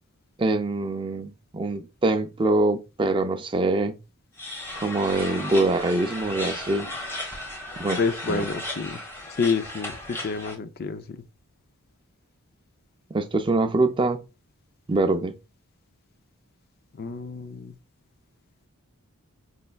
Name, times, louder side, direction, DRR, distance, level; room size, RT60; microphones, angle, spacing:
voice 1, 0.4-4.0 4.8-6.9 7.8-8.0 8.3-8.4 13.1-14.2 14.9-15.3, right 2 dB, 20° right, 0.4 m, -24 dB
sound 1, 4.4-10.6, left 1 dB, 10° left, 1.2 m, -35 dB
voice 2, 8.0-9.0 9.4-11.2 17.0-17.8, left 4 dB, 45° left, 0.4 m, -28 dB
5.3 x 3.3 x 2.3 m
head